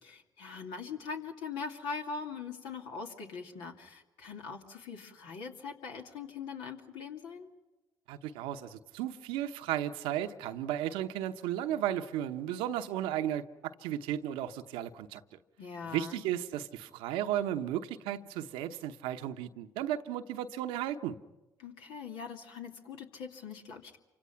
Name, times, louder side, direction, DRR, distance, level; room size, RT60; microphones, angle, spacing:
voice 1, 0.0-7.5 15.6-16.2 21.6-24.0, left 5 dB, 75° left, 2.5 m, -42 dB
voice 2, 8.1-15.2 15.8-21.2, right 11 dB, 80° right, 0.9 m, -34 dB
28.0 x 25.0 x 5.8 m
hypercardioid pair, 50°, 9 cm